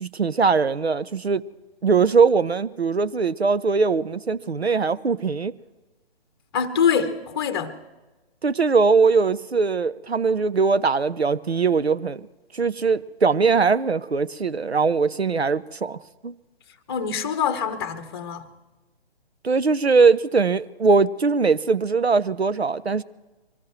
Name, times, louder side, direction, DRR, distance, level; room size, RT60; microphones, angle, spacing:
voice 1, 0.0-1.4 1.8-5.5 8.4-12.3 12.5-16.3 19.4-23.0, right 4 dB, 80° right, 0.7 m, -21 dB
voice 2, 6.5-7.8 16.9-18.5, left 7 dB, 25° left, 0.9 m, -24 dB
24.0 x 18.5 x 3.1 m
figure-of-eight pair, 135°, 31 cm